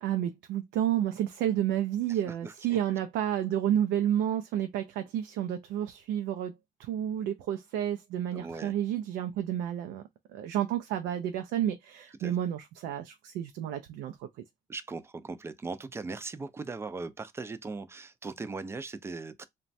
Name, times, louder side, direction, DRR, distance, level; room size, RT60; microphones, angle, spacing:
voice 1, 0.0-6.5 6.8-10.0 10.3-14.3, right 11 dB, 85° right, 0.4 m, -30 dB
voice 2, 2.1-2.8 8.3-8.7 12.2-12.3 14.7-19.4, right 3 dB, 15° right, 0.3 m, -39 dB
2.9 x 2.2 x 2.5 m
cardioid pair, 110°, 17 cm